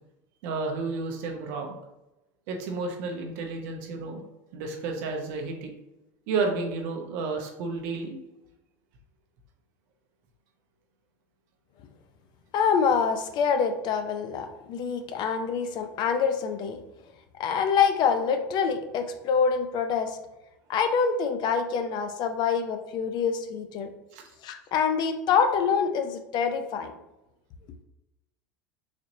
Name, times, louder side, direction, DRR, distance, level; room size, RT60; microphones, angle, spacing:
voice 1, 0.4-1.8 2.5-4.2 4.5-5.7 6.3-8.2 24.1-24.2, right 4 dB, 65° right, 2 dB, 0.8 m, -31 dB
voice 2, 12.5-16.8 17.4-20.2 20.7-23.9 24.4-26.9, left 6 dB, 50° left, 7 dB, 0.5 m, -26 dB
4.1 x 2.9 x 2.6 m, 0.94 s
hypercardioid pair, 100°, 10 cm